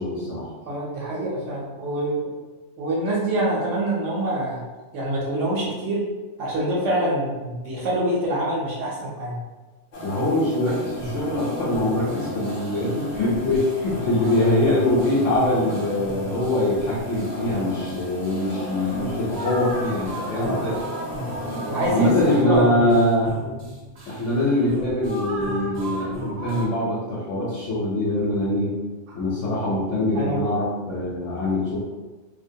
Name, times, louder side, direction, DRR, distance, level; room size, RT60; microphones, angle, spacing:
voice 1, 0.0-0.5 10.0-20.8 21.9-23.4 24.0-28.8 29.1-31.8, left 1 dB, 70° left, -6 dB, 0.9 m, -23 dB
voice 2, 0.6-2.3 2.8-4.6 4.9-6.1 6.4-9.4 14.2-14.4 16.3-16.5 20.4-20.6 21.5-22.1 22.4-22.9 30.1-30.4, right 1 dB, 80° right, -5 dB, 0.9 m, -25 dB
sound 1, 9.9-22.4, equal, 55° left, 0.5 m, -35 dB
sound 2, 10.6-26.7, right 1 dB, 45° right, 0.5 m, -36 dB
2.5 x 2.1 x 2.6 m, 1.3 s
omnidirectional pair, 1.3 m